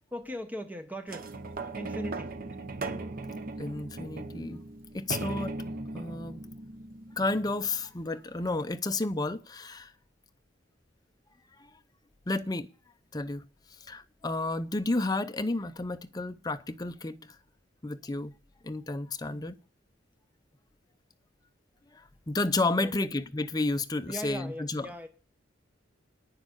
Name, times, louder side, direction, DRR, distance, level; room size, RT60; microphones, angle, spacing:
voice 1, 0.1-1.3 1.7-2.4 22.7-23.2 24.1-25.1, equal, 10° right, 1.0 m, -39 dB
sound 1, 1.1-7.8 8.5-8.6, right 3 dB, 50° right, 0.8 m, -38 dB
voice 2, 3.6-4.6 4.9-5.6 5.9-6.4 7.2-9.9 11.6-11.7 12.3-12.7 13.1-13.4 13.9-17.4 17.8-18.4 18.6-19.6 21.9-24.9, left 2 dB, 20° left, 0.6 m, -31 dB
9.6 x 6.6 x 8.0 m
head